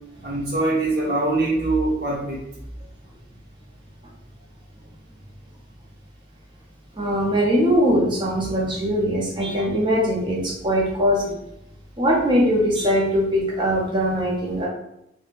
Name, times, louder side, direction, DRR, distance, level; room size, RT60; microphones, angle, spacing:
voice 1, 0.2-2.4, right 2 dB, 50° right, -7 dB, 1.0 m, -23 dB
voice 2, 7.0-11.4 12.0-14.7, equal, 25° right, -2 dB, 0.6 m, -21 dB
3.2 x 2.1 x 2.5 m, 0.82 s
head